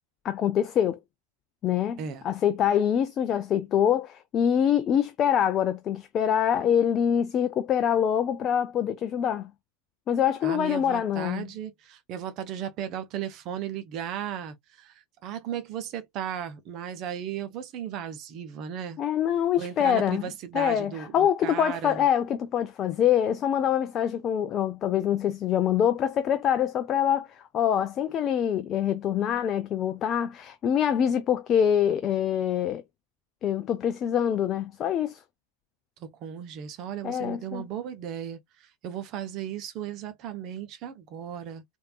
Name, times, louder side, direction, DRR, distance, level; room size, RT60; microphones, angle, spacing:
voice 1, 0.2-1.0 1.6-9.5 10.1-11.5 19.0-20.2 20.5-32.8 33.4-35.2 37.0-37.6, left 9 dB, 30° left, 0.4 m, -25 dB
voice 2, 10.4-14.9 15.2-19.0 19.6-22.1 36.0-41.6, right 9 dB, 35° right, 0.7 m, -36 dB
3.3 x 2.5 x 2.3 m
figure-of-eight pair, 90°, 0 cm